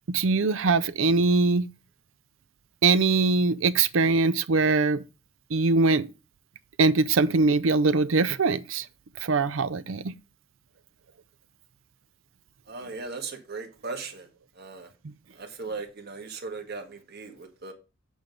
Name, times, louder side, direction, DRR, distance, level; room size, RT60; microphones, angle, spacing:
voice 1, 0.1-1.7 2.8-5.0 5.5-6.1 6.8-8.9 9.2-10.1 15.0-15.1, right 3 dB, 75° right, 0.6 m, -22 dB
voice 2, 12.7-14.3 14.6-14.9 15.4-17.7, right 4 dB, 55° right, 1.8 m, -38 dB
7.9 x 5.1 x 5.1 m
head